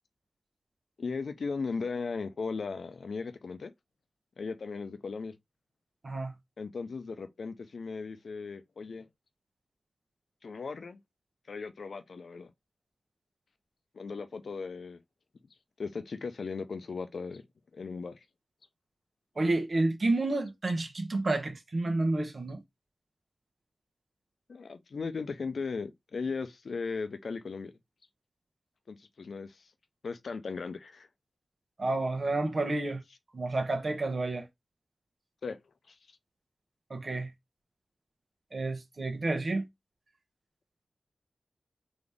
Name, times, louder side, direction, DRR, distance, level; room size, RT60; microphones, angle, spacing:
voice 1, 1.0-3.7 4.4-5.3 6.6-9.1 10.4-11.0 11.5-12.5 13.9-15.0 15.8-17.4 17.7-18.2 24.5-27.7 28.9-29.6 30.0-31.1 35.4-35.6 35.9-36.0, left 4 dB, 80° left, 0.7 m, -37 dB
voice 2, 19.4-22.6 31.8-33.0 33.3-34.4 36.9-37.3 38.5-39.6, right 2 dB, 55° right, 1.2 m, -30 dB
4.0 x 2.9 x 3.5 m
cardioid pair, 55°, 0 cm